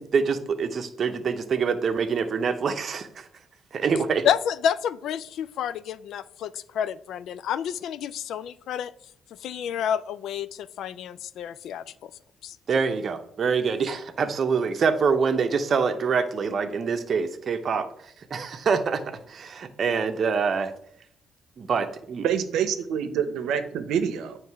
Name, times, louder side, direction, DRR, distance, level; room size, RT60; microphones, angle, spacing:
voice 1, 0.0-3.3 3.7-4.3 12.7-20.7 21.6-22.2, right 5 dB, 50° right, 0.8 m, -25 dB
voice 2, 4.0-8.9 9.4-12.1 12.4-12.6, left 9 dB, 75° left, 0.3 m, -29 dB
voice 3, 22.2-24.4, right 8 dB, 85° right, 0.8 m, -26 dB
9.3 x 3.2 x 4.7 m
cardioid pair, 90°, 0 cm